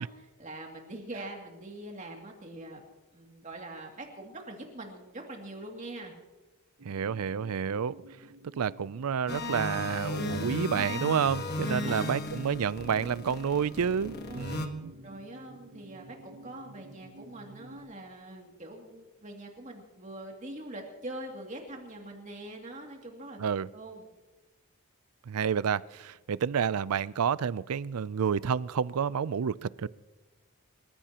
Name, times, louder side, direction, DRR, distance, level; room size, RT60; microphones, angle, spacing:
voice 1, 0.0-2.8 3.1-6.1 11.7-12.2 14.3-14.5 15.0-23.4 23.7-24.1, right 1 dB, 35° right, 1 dB, 2.6 m, -43 dB
sound 1, 6.8-17.8, right 1 dB, 70° right, 1.5 m, -52 dB
voice 2, 6.8-7.9 8.6-14.9 23.4-23.7 25.3-29.9, right 7 dB, 90° right, 19 dB, 0.4 m, -29 dB
sound 2, 9.3-14.7, left 2 dB, 45° left, 1.3 m, -35 dB
28.5 x 15.0 x 3.0 m, 1.1 s
head